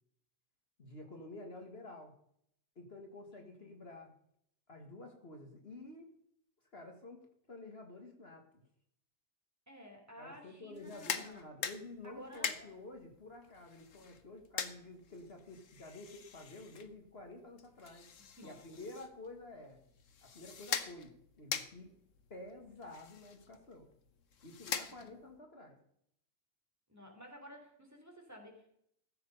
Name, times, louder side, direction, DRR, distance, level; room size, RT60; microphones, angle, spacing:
voice 1, 0.8-2.1 2.8-4.1 4.7-6.1 6.7-8.6 10.2-18.1 18.4-19.8 20.2-21.9 22.3-23.9 24.4-25.8, left 2 dB, 50° left, 3 dB, 2.0 m, -50 dB
voice 2, 3.3-3.8 9.7-11.4 12.0-12.8 18.4-18.6 24.7-25.1 26.9-28.7, equal, 10° right, 1 dB, 3.1 m, -53 dB
sound 1, 10.7-25.4, left 7 dB, 70° left, 1.4 m, -44 dB
14.5 x 7.9 x 5.4 m, 0.70 s
omnidirectional pair, 1.4 m